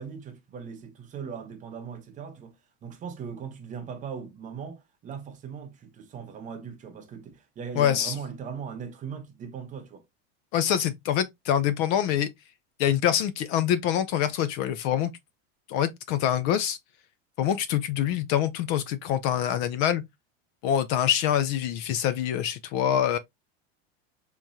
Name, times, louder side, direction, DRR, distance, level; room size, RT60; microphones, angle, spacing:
voice 1, 0.0-10.0, right 6 dB, 25° right, 0.7 m, -39 dB
voice 2, 7.8-8.1 10.5-12.3 12.8-15.1 15.7-16.8 17.4-20.0 20.6-23.2, left 10 dB, 45° left, 0.4 m, -25 dB
3.5 x 3.0 x 2.6 m
supercardioid pair, 145°, 32 cm